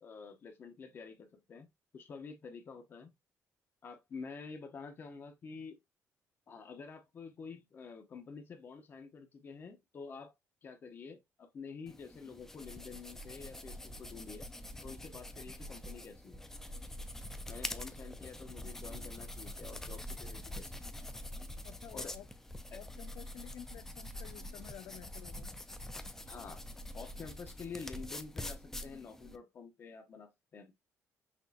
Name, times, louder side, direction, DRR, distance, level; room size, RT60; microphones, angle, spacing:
voice 1, 0.0-3.1 3.8-5.8 6.5-10.3 10.6-14.5 14.8-16.5 17.5-20.8 21.9-22.1 22.7-22.8 26.3-30.7, left 5 dB, 40° left, 0.8 m, -48 dB
sound 1, 11.9-29.4, left 1 dB, 5° left, 0.4 m, -45 dB
voice 2, 21.6-22.3 22.7-25.5, left 12 dB, 75° left, 0.3 m, -51 dB
5.8 x 2.8 x 2.5 m
cardioid pair, 160°, 6 cm